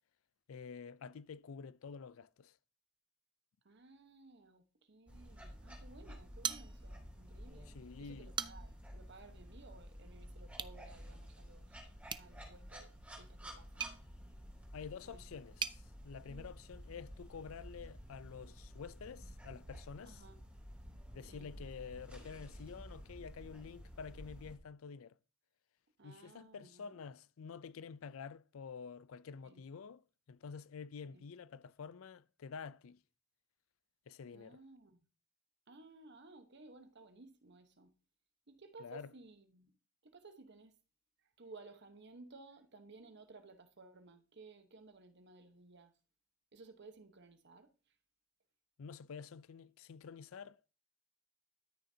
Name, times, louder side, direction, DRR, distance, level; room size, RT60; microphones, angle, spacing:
voice 1, 0.5-2.6 7.7-8.3 14.7-20.2 21.1-25.2 26.0-30.0 30.3-33.0 34.1-34.6 38.8-39.1 48.8-50.7, left 6 dB, 80° left, 0.4 m, -49 dB
voice 2, 3.6-7.7 8.0-13.8 15.0-15.2 16.3-16.5 20.1-20.4 21.3-21.5 26.0-27.0 29.4-29.6 31.0-31.2 34.3-35.0 35.7-37.9 38.5-39.7 40.0-40.7 41.2-45.9 46.5-48.0, right 3 dB, 55° right, 1.1 m, -58 dB
sound 1, 5.1-24.6, equal, 5° right, 2.9 m, -52 dB
sound 2, 6.4-7.2 7.5-7.6 8.1-8.9 10.5-10.8 12.0-15.8, right 7 dB, 20° right, 0.4 m, -43 dB
13.0 x 6.5 x 2.8 m
head